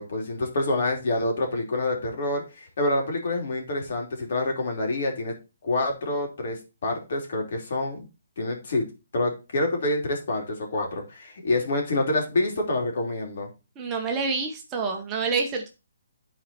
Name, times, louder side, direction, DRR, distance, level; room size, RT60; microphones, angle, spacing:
voice 1, 0.0-5.3 5.6-8.1 8.4-8.9 9.1-13.5, left 2 dB, 55° left, 2 dB, 3.0 m, -27 dB
voice 2, 13.8-15.7, right 4 dB, 15° right, 2 dB, 1.0 m, -27 dB
10.0 x 4.3 x 4.2 m, 0.29 s
hypercardioid pair, 160°, 0 cm